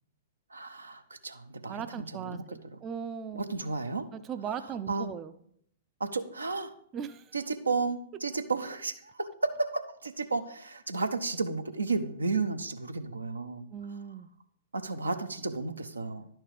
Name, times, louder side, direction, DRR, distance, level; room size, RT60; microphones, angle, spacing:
voice 1, 0.5-2.4 2.7-2.8 3.3-4.1 4.9-5.1 6.0-6.7 7.3-13.7 14.7-16.3, right 3 dB, 80° right, 8 dB, 0.6 m, -33 dB
voice 2, 1.7-3.6 4.1-5.3 6.9-7.3 13.7-14.3, right 7 dB, 25° right, 11 dB, 0.4 m, -38 dB
10.5 x 4.5 x 4.9 m, 0.68 s
figure-of-eight pair, 105°, 0 cm